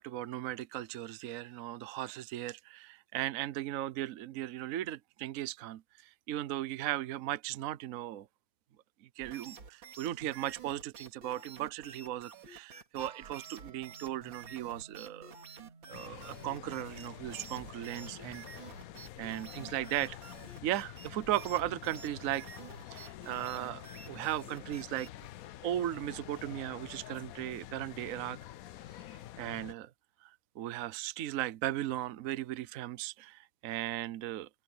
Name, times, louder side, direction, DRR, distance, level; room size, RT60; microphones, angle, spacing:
voice 1, 0.0-5.8 6.3-8.3 9.0-15.3 15.9-18.6 19.2-20.2 20.6-22.4 22.9-25.1 25.6-28.4 29.4-29.9 30.2-30.3 30.6-34.5, right 13 dB, 60° right, 0.9 m, -37 dB
sound 1, 9.2-25.3, right 5 dB, 80° right, 3.2 m, -51 dB
sound 2, 13.0-18.8, right 5 dB, 40° right, 1.3 m, -55 dB
sound 3, 15.9-29.7, left 14 dB, 75° left, 0.8 m, -48 dB
omnidirectional pair, 2.1 m